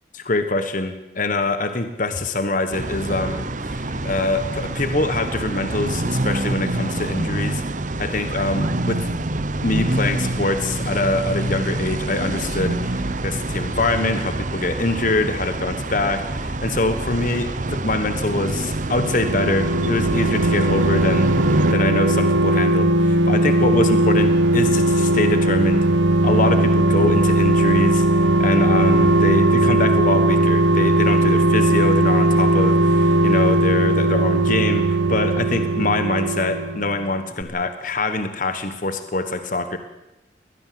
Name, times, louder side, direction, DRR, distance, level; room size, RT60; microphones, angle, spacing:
voice 1, 0.1-7.6 8.0-9.1 9.6-25.9 26.2-39.8, left 2 dB, 45° left, 9 dB, 1.3 m, -24 dB
sound 1, 2.7-21.7, right 2 dB, 45° right, 1.0 m, -26 dB
sound 2, 18.8-37.1 37.4-37.5, right 1 dB, 80° right, 1.3 m, -18 dB
21.5 x 19.5 x 7.7 m, 0.96 s
head